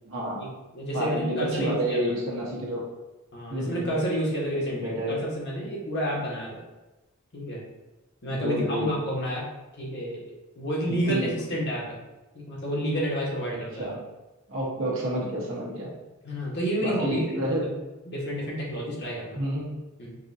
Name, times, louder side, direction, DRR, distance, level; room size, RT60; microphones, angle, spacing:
voice 1, 0.0-0.4 0.9-2.8 3.5-4.0 4.5-5.2 8.3-8.9 10.9-11.3 13.8-14.0 14.5-15.9 16.8-17.7 19.3-19.7, right 1 dB, 60° right, -4 dB, 1.1 m, -29 dB
voice 2, 0.7-2.0 3.3-6.6 7.3-7.6 8.2-9.5 9.8-10.2 10.6-12.0 12.3-13.9 16.2-17.5 18.1-19.4 20.0-20.2, equal, 50° left, -4 dB, 1.2 m, -30 dB
5.3 x 2.4 x 2.7 m, 1.1 s
head